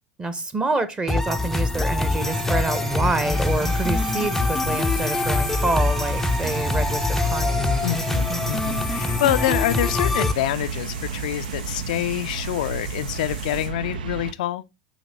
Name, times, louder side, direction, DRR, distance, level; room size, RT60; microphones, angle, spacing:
voice 1, 0.2-7.6, right 3 dB, 20° right, 0.9 m, -27 dB
sound 1, 1.1-10.3, left 3 dB, 5° left, 0.5 m, -24 dB
sound 2, 2.2-14.3, right 6 dB, 70° right, 0.5 m, -33 dB
sound 3, 3.3-13.7, right 3 dB, 50° right, 2.3 m, -43 dB
voice 2, 7.8-14.6, left 14 dB, 60° left, 0.4 m, -26 dB
8.2 x 2.8 x 4.1 m
figure-of-eight pair, 80°, 5 cm